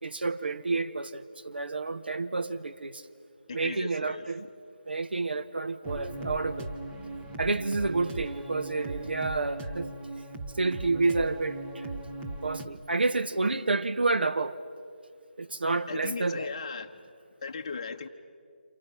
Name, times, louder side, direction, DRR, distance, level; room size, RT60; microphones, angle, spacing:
voice 1, 0.0-3.0 3.5-4.4 4.9-6.7 7.4-9.9 10.5-11.9 12.4-14.6 15.4-16.5, right 3 dB, 70° right, 1.3 m, -29 dB
voice 2, 3.5-4.3 12.0-12.1 15.9-17.0 17.4-18.1, left 5 dB, 35° left, 1.3 m, -37 dB
sound 1, 5.8-12.7, right 2 dB, 10° right, 1.2 m, -38 dB
29.0 x 28.5 x 5.8 m
figure-of-eight pair, 165°, 6 cm